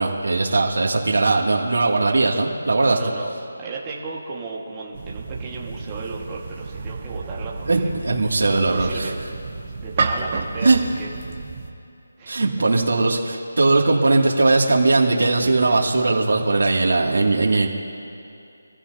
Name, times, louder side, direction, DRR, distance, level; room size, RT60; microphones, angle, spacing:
voice 1, 0.0-3.0 7.7-9.1 10.6-10.8 12.3-17.7, right 3 dB, 70° right, -2 dB, 2.5 m, -19 dB
voice 2, 2.8-3.3 3.6-7.9 8.6-9.2 9.8-11.1 12.2-12.5, right 4 dB, 15° right, -4 dB, 1.7 m, -35 dB
sound 1, 4.9-11.7, right 4 dB, 30° right, 1.2 m, -31 dB
25.5 x 15.0 x 2.8 m, 2.6 s
figure-of-eight pair, 170°, 0 cm